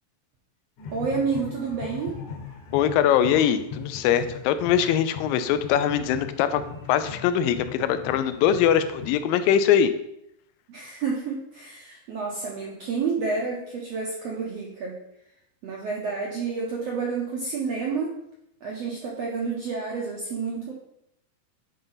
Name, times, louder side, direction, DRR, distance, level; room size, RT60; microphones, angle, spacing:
sound 1, 0.8-9.6, left 5 dB, 65° left, 2.6 m, -39 dB
voice 1, 0.9-2.2 10.7-15.0 15.6-18.2 18.6-20.7, right 5 dB, 75° right, -3 dB, 1.5 m, -29 dB
voice 2, 2.7-6.6 6.9-9.9, left 9 dB, 85° left, 11 dB, 2.2 m, -22 dB
9.8 x 3.9 x 4.0 m, 0.79 s
omnidirectional pair, 4.1 m